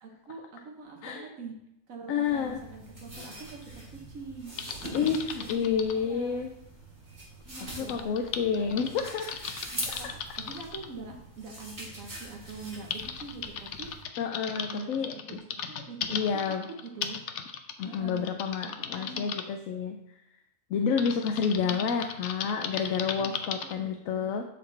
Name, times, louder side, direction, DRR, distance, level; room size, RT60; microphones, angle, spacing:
voice 1, 0.0-1.5 1.9-3.6 4.1-4.6 4.8-6.4 7.5-8.8 9.7-13.9 14.5-16.6 16.8-17.2 17.8-18.3 18.9-19.3 20.7-22.0 23.2-24.4, right 4 dB, 90° right, 1 dB, 1.4 m, -44 dB
voice 2, 2.1-2.6 4.9-6.5 7.8-9.5 9.9-10.0 14.2-15.1 16.1-16.6 17.8-20.0 20.7-24.5, left 6 dB, 90° left, 4 dB, 1.0 m, -29 dB
sound 1, 2.2-14.0, right 1 dB, 40° right, 3.0 m, -43 dB
Typing, 4.6-6.0 7.9-10.9 11.9-12.0 12.5-19.4 21.0-23.7, left 7 dB, 65° left, 0.9 m, -37 dB
11.5 x 4.2 x 3.3 m, 0.83 s
omnidirectional pair, 1.4 m